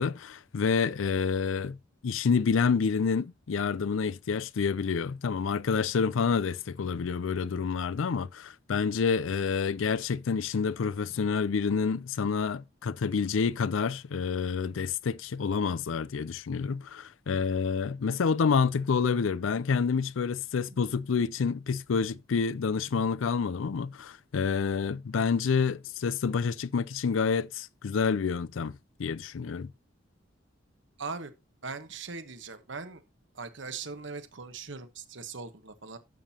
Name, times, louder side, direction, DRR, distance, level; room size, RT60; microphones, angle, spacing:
voice 1, 0.0-1.8 2.0-29.7, left 5 dB, 80° left, 0.5 m, -28 dB
voice 2, 31.0-31.3 31.6-33.0 33.3-36.0, right 4 dB, 65° right, 1.2 m, -40 dB
11.5 x 7.4 x 2.8 m
head